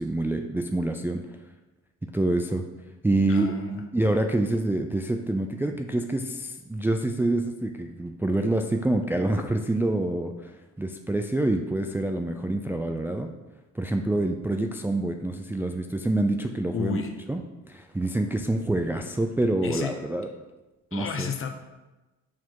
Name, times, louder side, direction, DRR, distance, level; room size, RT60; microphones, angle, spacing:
voice 1, 0.0-1.4 2.0-2.6 3.0-3.5 3.9-13.3 13.8-17.0 17.3-17.4 17.7-20.3 20.9-21.3, right 2 dB, 5° right, 4 dB, 0.4 m, -26 dB
voice 2, 3.3-3.8 16.7-17.1 19.6-19.9 20.9-21.5, left 6 dB, 45° left, 5 dB, 0.9 m, -31 dB
5.9 x 4.6 x 4.6 m, 1.1 s
cardioid pair, 90°, 30 cm